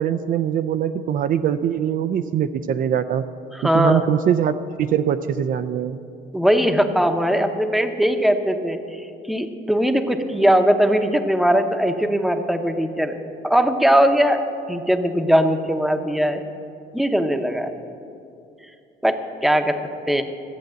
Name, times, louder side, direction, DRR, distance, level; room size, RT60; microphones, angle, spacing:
voice 1, 0.0-3.3 3.6-4.5 4.8-6.0, right 9 dB, 55° right, 10 dB, 0.4 m, -22 dB
voice 2, 3.5-4.0 6.3-8.8 9.3-13.1 13.4-14.4 14.7-16.4 16.9-17.7 19.0-19.2 19.4-19.8 20.1-20.2, equal, ahead, 7 dB, 0.8 m, -19 dB
13.0 x 8.0 x 7.5 m, 2.6 s
cardioid pair, 110°, 17 cm